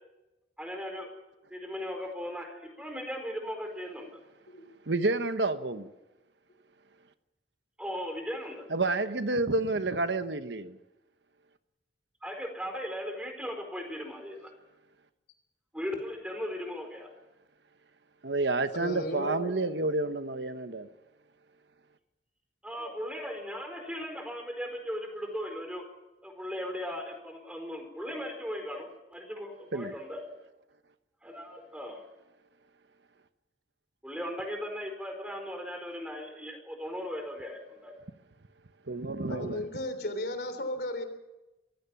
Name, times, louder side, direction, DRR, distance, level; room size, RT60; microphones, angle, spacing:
voice 1, 0.6-1.1 1.5-4.1 7.8-8.6 12.2-14.5 15.7-17.1 22.6-25.8 26.2-30.2 31.2-32.0 34.0-37.9, equal, 5° right, 4.5 m, -37 dB
voice 2, 4.9-5.9 8.7-10.8 18.2-20.9 29.7-29.9 38.9-39.6, right 2 dB, 75° right, 1.1 m, -29 dB
voice 3, 18.7-19.5 22.7-23.0 39.3-41.0, left 1 dB, 60° left, 3.4 m, -35 dB
24.5 x 15.5 x 7.3 m
head